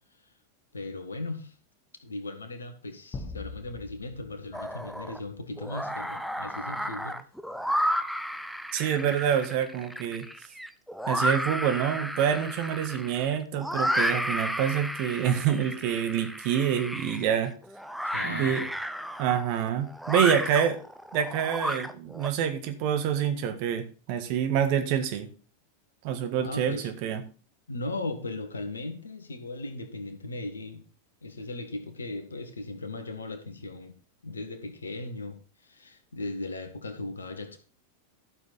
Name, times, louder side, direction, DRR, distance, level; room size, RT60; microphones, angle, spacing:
voice 1, 0.7-1.6 2.0-7.2 18.0-18.7 26.3-26.9 27.7-30.8 31.2-34.0 34.2-37.6, left 2 dB, 75° left, 8 dB, 1.7 m, -37 dB
sound 1, 3.1-5.7, left 4 dB, 20° left, 1.4 m, -43 dB
sound 2, 4.5-5.2 5.6-22.3, equal, ahead, 0.7 m, -32 dB
voice 2, 8.7-10.2 11.1-17.5 18.2-18.6 19.2-20.8 21.1-25.3 26.0-27.2, right 9 dB, 45° right, 8 dB, 1.6 m, -27 dB
12.5 x 7.0 x 4.3 m, 0.36 s
figure-of-eight pair, 90°, 0 cm